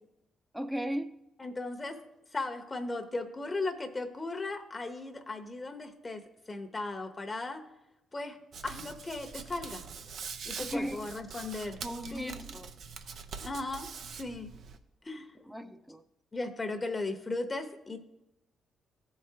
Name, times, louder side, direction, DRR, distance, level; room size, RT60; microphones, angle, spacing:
voice 1, 0.5-1.2 10.6-11.1 11.8-12.7 15.3-16.0, equal, 5° right, 0.7 m, -37 dB
voice 2, 1.4-2.0 2.3-6.2 6.5-7.6 8.1-8.4 8.6-9.8 10.4-11.8 12.1-12.4 13.4-13.9 14.2-14.5 15.0-15.3 16.3-18.0, left 2 dB, 30° left, 0.9 m, -36 dB
Hands, 8.5-14.8, right 6 dB, 65° right, 0.6 m, -44 dB
14.0 x 4.9 x 2.8 m
supercardioid pair, 55°, 0 cm